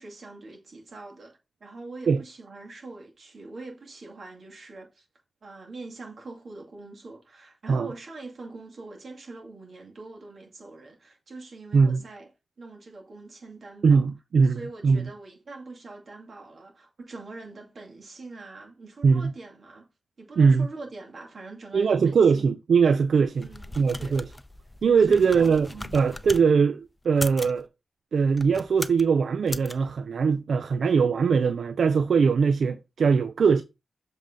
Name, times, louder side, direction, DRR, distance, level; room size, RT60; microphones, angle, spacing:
voice 1, 0.0-5.1 5.4-12.3 12.6-14.1 14.4-19.9 20.2-22.5 23.4-24.2 25.0-25.9, right 3 dB, 65° right, 2.2 m, -43 dB
voice 2, 13.8-15.1 19.0-19.3 20.4-20.7 21.7-23.5 23.8-24.3 24.8-27.7 28.1-33.6, right 5 dB, 80° right, 0.4 m, -21 dB
sound 1, 23.2-26.5 27.1-27.6 28.3-29.1 29.5-29.7, left 1 dB, 20° left, 0.5 m, -38 dB
7.3 x 3.7 x 3.7 m
cardioid pair, 65°, 0 cm